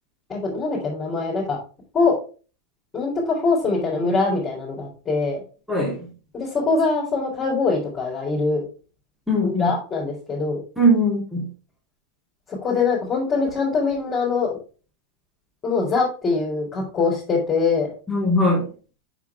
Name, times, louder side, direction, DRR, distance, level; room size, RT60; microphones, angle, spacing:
voice 1, 0.3-1.6 1.9-2.1 2.9-5.4 6.3-8.6 9.6-10.6 12.6-14.6 15.6-17.9, left 4 dB, 20° left, -5 dB, 3.4 m, -23 dB
voice 2, 5.7-6.0 9.3-9.7 10.8-11.5 18.1-18.7, equal, ahead, -4 dB, 3.2 m, -20 dB
8.3 x 6.1 x 3.6 m, 0.36 s
figure-of-eight pair, 90°, 0 cm